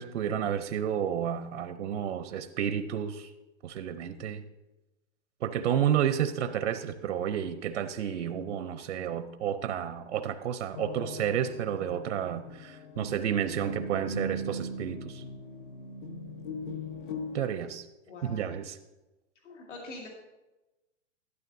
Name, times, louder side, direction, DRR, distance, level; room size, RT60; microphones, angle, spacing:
voice 1, 0.0-3.3 3.6-4.4 5.4-15.2 17.3-17.8 18.2-18.8, right 9 dB, 85° right, 10 dB, 0.7 m, -31 dB
sound 1, 10.7-17.4, equal, 45° left, 0.9 m, -39 dB
voice 2, 18.1-18.5 19.4-20.1, left 2 dB, 85° left, -1 dB, 2.4 m, -44 dB
12.0 x 11.5 x 2.6 m, 1.0 s
hypercardioid pair, 180°, 35 cm